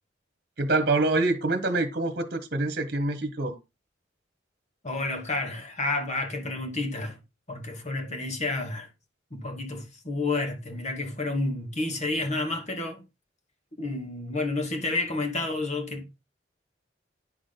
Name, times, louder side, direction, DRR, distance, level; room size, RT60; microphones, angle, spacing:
voice 1, 0.6-3.5, right 2 dB, 55° right, 1.4 m, -26 dB
voice 2, 4.8-7.2 7.5-8.9 9.3-13.0 13.8-16.3, left 2 dB, 40° left, 2.1 m, -30 dB
9.9 x 6.3 x 3.9 m
head